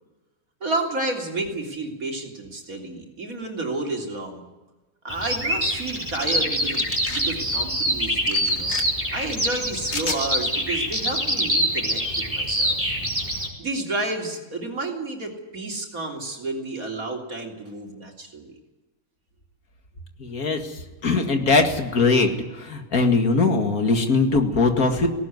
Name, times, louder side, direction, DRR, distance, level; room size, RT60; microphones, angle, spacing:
voice 1, 0.6-4.4 5.0-8.8 9.1-12.8 13.6-18.5, right 2 dB, 70° right, 1 dB, 3.9 m, -31 dB
Bird vocalization bird call bird song, 5.1-13.5, equal, 10° right, 4.4 m, -25 dB
sound 1, 6.7-7.3 8.3-8.8 9.9-10.2, left 4 dB, 50° left, 1.9 m, -31 dB
voice 2, 20.2-25.1, left 3 dB, 80° left, 5 dB, 2.6 m, -21 dB
18.0 x 17.5 x 9.6 m, 1.2 s
omnidirectional pair, 1.5 m